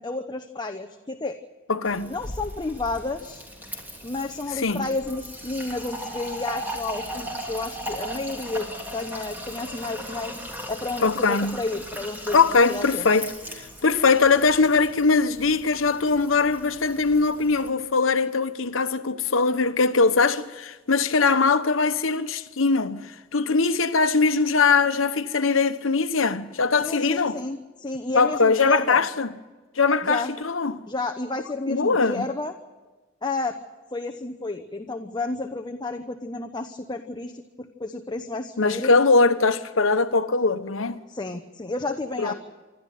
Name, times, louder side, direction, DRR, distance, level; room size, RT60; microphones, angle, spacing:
voice 1, 0.0-1.4 2.1-3.4 4.0-8.7 8.9-10.3 10.7-12.4 12.7-13.1 26.8-29.1 30.0-30.3 30.9-32.5 33.2-33.6 33.9-38.9 41.1-42.3, left 3 dB, 20° left, 0.9 m, -31 dB
voice 2, 1.7-2.1 4.5-4.9 11.0-11.6 12.3-13.3 13.6-27.4 28.1-29.3 29.8-30.8 31.7-32.3 38.6-41.0 42.2-42.3, left 4 dB, 85° left, 1.0 m, -21 dB
Fill (with liquid), 1.8-17.7, equal, 10° right, 3.2 m, -38 dB
26.5 x 12.5 x 9.3 m
head